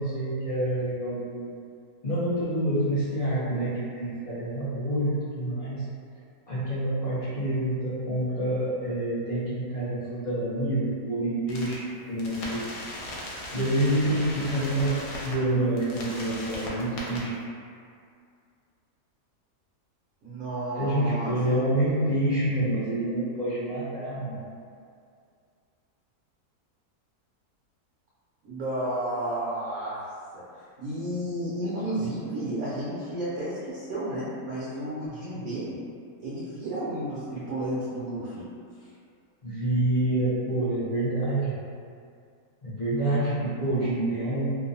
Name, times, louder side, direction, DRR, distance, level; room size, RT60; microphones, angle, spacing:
voice 1, 0.0-1.5 2.0-5.8 6.5-12.6 13.5-14.9 15.2-17.3 20.8-24.4 39.4-41.5 42.6-44.5, right 1 dB, 40° left, -13 dB, 0.6 m, -27 dB
sound 1, 11.5-11.7 12.2-15.3 15.8-17.2, left 1 dB, 70° left, 1.0 m, -37 dB
voice 2, 20.2-21.3 28.4-30.0 30.3-35.7 36.2-38.4 38.8-38.9, right 1 dB, 70° right, -9 dB, 1.1 m, -32 dB
2.7 x 2.0 x 2.6 m, 2.3 s
omnidirectional pair, 1.6 m